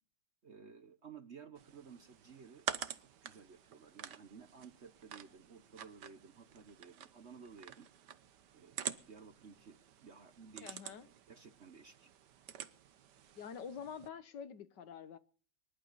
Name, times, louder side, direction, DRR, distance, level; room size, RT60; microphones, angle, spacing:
voice 1, 0.4-2.7 2.9-7.9 8.5-12.1, right 6 dB, 45° right, 1.0 m, -56 dB
sound 1, 1.6-14.1, right 9 dB, 70° right, 1.6 m, -48 dB
voice 2, 10.6-11.1 13.4-15.2, left 7 dB, 70° left, 1.8 m, -47 dB
24.5 x 12.0 x 4.1 m
omnidirectional pair, 2.0 m